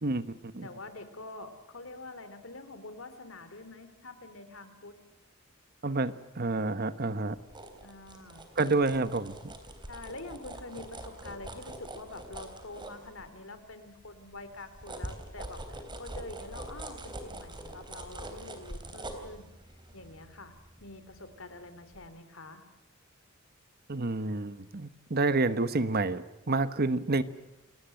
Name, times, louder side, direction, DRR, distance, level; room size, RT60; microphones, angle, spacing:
voice 1, 0.0-0.7 5.8-7.4 8.6-9.5 23.9-27.2, right 3 dB, 50° right, 13 dB, 1.1 m, -29 dB
voice 2, 0.6-4.9 7.8-8.5 9.9-19.5 19.9-20.5 20.8-22.7, left 2 dB, 75° left, 10 dB, 3.1 m, -46 dB
sound 1, 7.3-13.6 14.0-21.5 21.9-22.1, right 1 dB, 25° right, 3.5 m, -44 dB
28.5 x 19.0 x 7.8 m, 1.0 s
head